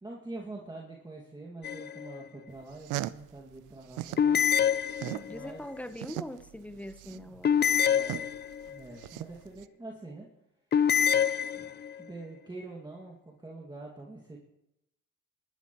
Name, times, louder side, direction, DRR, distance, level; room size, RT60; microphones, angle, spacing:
voice 1, 0.0-4.4 5.3-5.6 7.9-8.3 8.7-10.3 11.5-14.4, right 2 dB, 15° right, -2 dB, 2.1 m, -45 dB
sound 1, 1.6-2.2 4.2-5.5 7.4-8.8 10.7-12.0, left 8 dB, 35° left, 0.5 m, -26 dB
sound 2, 2.6-4.3 4.6-9.6, right 16 dB, 90° right, 0.5 m, -39 dB
voice 2, 5.0-7.7, left 1 dB, 5° left, 10 dB, 0.9 m, -42 dB
23.0 x 12.0 x 3.1 m, 0.86 s
cardioid pair, 90°, 30 cm